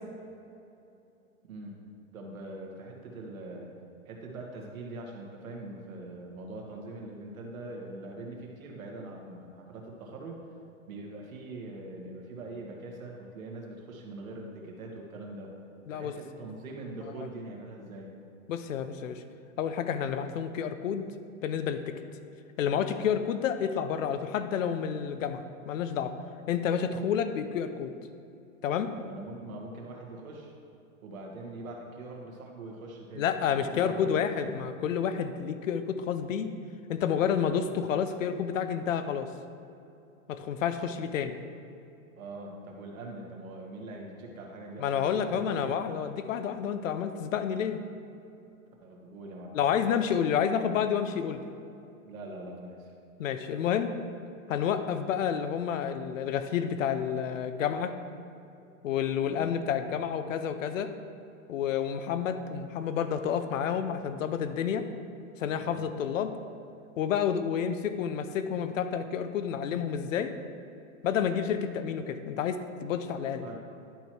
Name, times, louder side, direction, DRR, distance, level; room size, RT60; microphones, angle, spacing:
voice 1, 2.1-3.7 4.1-10.4 10.9-15.5 15.9-18.1 28.9-30.5 31.0-34.5 42.2-45.8 48.8-49.5 52.0-52.9 59.2-59.5 65.6-65.8 73.4-73.6, right 2 dB, 75° right, 0 dB, 1.9 m, -42 dB
voice 2, 18.5-19.2 19.6-21.1 21.4-22.0 22.6-26.1 26.5-27.9 28.6-28.9 33.2-36.5 36.9-39.3 40.3-41.4 44.8-47.8 49.5-51.4 53.2-53.9 54.5-58.0 58.8-60.9 61.5-64.9 65.4-66.3 67.0-70.3 71.0-73.5, left 8 dB, 65° left, 10 dB, 0.7 m, -29 dB
11.5 x 4.5 x 4.7 m, 2.7 s
hypercardioid pair, 175°, 41 cm